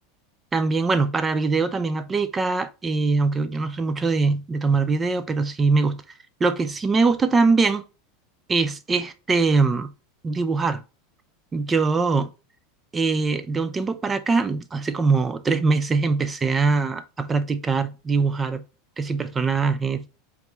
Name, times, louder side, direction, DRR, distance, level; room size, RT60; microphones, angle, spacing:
voice 1, 0.5-6.0 6.4-7.8 8.5-9.9 10.2-10.8 11.5-12.3 12.9-18.6 19.0-20.0, right 4 dB, 20° right, 0.5 m, -22 dB
5.0 x 3.2 x 3.3 m
hypercardioid pair, 95°, 0 cm